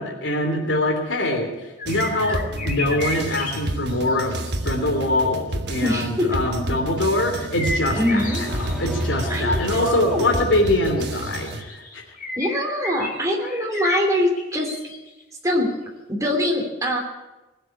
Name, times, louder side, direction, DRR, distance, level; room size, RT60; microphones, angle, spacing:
voice 1, 0.0-1.5 1.9-5.4 5.7-12.0, left 1 dB, 80° left, 2 dB, 3.1 m, -23 dB
Blackbird in forest, 1.8-5.2 7.5-15.2 15.7-15.8, left 2 dB, 45° left, 3.2 m, -33 dB
sound 1, 1.8-11.6, right 1 dB, 60° right, 1.3 m, -30 dB
voice 2, 5.8-6.4 7.9-8.4 9.3-10.4 12.4-14.7 15.4-15.7 16.1-17.0, left 1 dB, 15° right, 1 dB, 2.9 m, -23 dB
sound 2, 7.5-11.4, equal, ahead, 1.3 m, -32 dB
19.5 x 7.6 x 9.7 m, 1.1 s
head